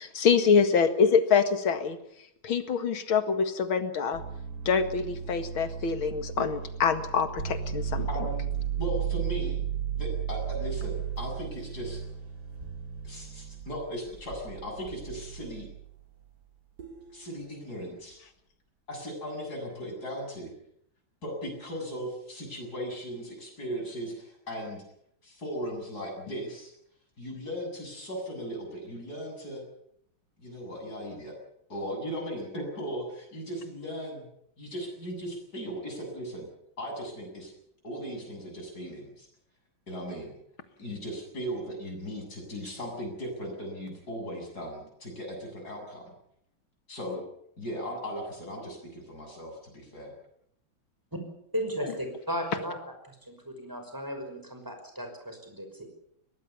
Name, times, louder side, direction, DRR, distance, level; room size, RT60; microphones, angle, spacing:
voice 1, 0.0-2.0 2.4-4.2 4.7-8.1, left 6 dB, 85° left, 9 dB, 2.7 m, -25 dB
sound 1, 4.1-15.9 16.8-17.1, right 8 dB, 55° right, 4.5 m, -35 dB
voice 2, 8.1-8.5 8.8-9.6 10.0-12.0 13.0-15.7 17.1-18.2 18.9-20.5 21.2-24.8 25.2-26.7 27.2-29.6 30.4-31.4 31.7-34.2 34.6-36.5 36.8-37.5 37.8-39.3 39.9-40.3 40.8-46.1 46.9-47.2 47.6-50.1, equal, 50° left, 1 dB, 8.5 m, -37 dB
voice 3, 51.5-52.8 53.0-55.9, equal, 10° right, 5 dB, 5.6 m, -35 dB
22.5 x 19.0 x 7.1 m, 0.71 s
omnidirectional pair, 2.2 m